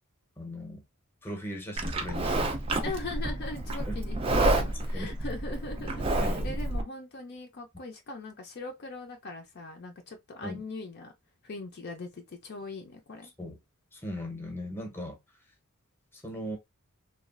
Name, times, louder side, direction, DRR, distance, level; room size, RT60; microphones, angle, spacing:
voice 1, 0.4-0.8 1.2-2.6 3.9-4.0 4.9-5.1 6.0-6.6 10.4-10.6 13.4-13.6 13.9-15.2 16.1-16.6, equal, 10° left, 0.8 m, -38 dB
Livestock farm animals working animals, 1.8-6.8, right 2 dB, 25° right, 0.4 m, -29 dB
voice 2, 2.8-11.1 11.4-13.3, left 3 dB, 50° left, 0.5 m, -40 dB
3.0 x 2.3 x 2.4 m
head